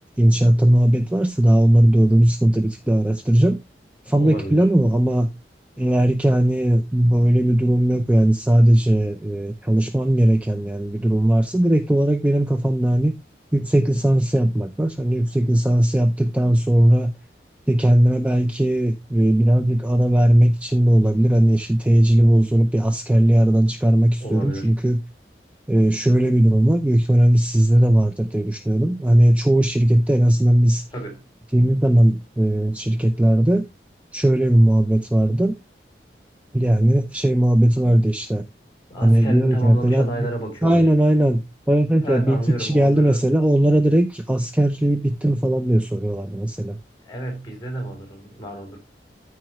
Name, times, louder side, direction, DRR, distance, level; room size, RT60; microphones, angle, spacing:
voice 1, 0.2-3.6 4.1-5.3 5.8-13.1 13.5-17.1 17.7-25.0 25.7-30.8 31.5-33.6 34.1-35.6 36.5-38.4 39.0-40.3 40.6-46.8, right 1 dB, 5° right, 0.5 m, -18 dB
voice 2, 4.2-4.7 24.2-24.7 30.9-31.2 38.9-40.9 42.0-43.2 47.0-48.8, right 1 dB, 25° left, 3.6 m, -30 dB
14.0 x 4.8 x 3.1 m
head